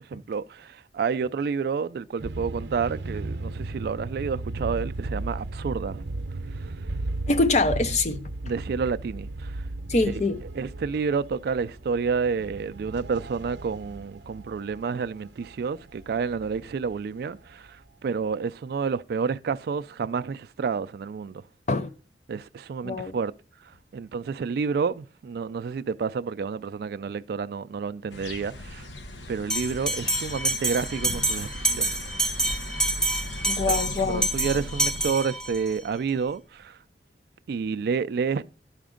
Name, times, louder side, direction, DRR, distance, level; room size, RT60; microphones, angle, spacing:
voice 1, 0.0-6.0 6.6-6.7 8.4-9.6 10.1-10.2 10.5-21.4 22.3-23.3 23.9-28.9 29.3-31.9 34.1-36.8 37.5-38.4, right 5 dB, 60° right, 0.3 m, -29 dB
sound 1, 2.2-17.7, right 2 dB, 80° right, 0.7 m, -36 dB
voice 2, 7.3-8.2 9.9-10.4 21.7-21.9 22.8-23.2 33.5-34.3, left 3 dB, 40° left, 0.6 m, -24 dB
sound 2, 28.1-35.1, left 1 dB, 80° left, 0.8 m, -38 dB
Bell, 29.5-35.7, right 2 dB, 5° left, 0.8 m, -27 dB
11.5 x 5.0 x 3.7 m
head